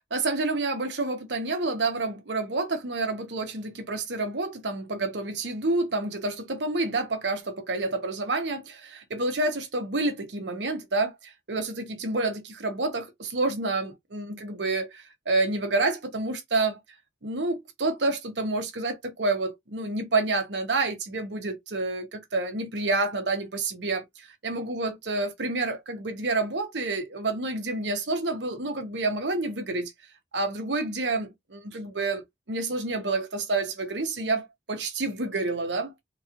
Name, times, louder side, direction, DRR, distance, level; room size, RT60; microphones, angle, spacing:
voice 1, 0.1-16.8 17.2-29.9 30.3-32.2 32.5-36.0, right 2 dB, 90° right, 1.0 m, -29 dB
3.8 x 3.1 x 2.5 m
head